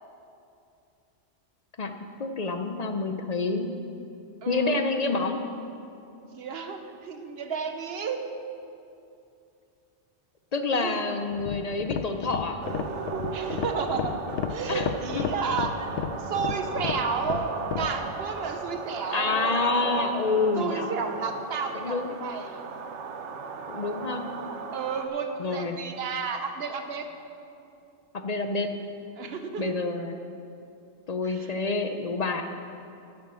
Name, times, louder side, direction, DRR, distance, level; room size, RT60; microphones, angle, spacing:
voice 1, 2.2-3.7 4.5-5.4 10.5-12.6 14.7-15.5 19.1-20.9 21.7-22.2 23.7-24.3 25.4-25.8 28.1-28.7 29.6-30.1 31.1-32.4, left 3 dB, 45° left, 6 dB, 0.6 m, -28 dB
voice 2, 4.4-4.8 6.2-8.2 10.8-11.0 13.3-14.1 14.5-19.3 20.5-22.7 24.7-27.1 29.2-29.7 31.3-31.5, right 5 dB, 65° right, 6 dB, 1.0 m, -32 dB
sound 1, 11.3-18.0, left 7 dB, 90° left, 0.9 m, -32 dB
sound 2, 12.6-25.1, right 5 dB, 85° right, 1.0 m, -36 dB
10.5 x 7.3 x 6.1 m, 2.6 s
omnidirectional pair, 1.2 m